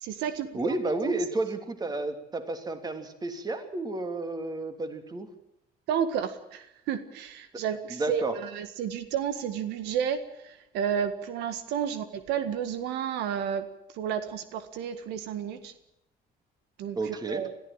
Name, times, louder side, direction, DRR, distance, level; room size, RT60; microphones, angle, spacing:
voice 1, 0.0-0.7 1.0-1.2 1.9-2.0 5.9-10.2 10.4-13.7 13.9-15.7 16.8-17.5, right 8 dB, 90° right, 10 dB, 1.8 m, -31 dB
voice 2, 0.5-5.3 7.9-8.4 16.9-17.4, right 2 dB, 25° right, 7 dB, 3.1 m, -31 dB
21.0 x 14.5 x 9.0 m, 0.79 s
cardioid pair, 110°, 17 cm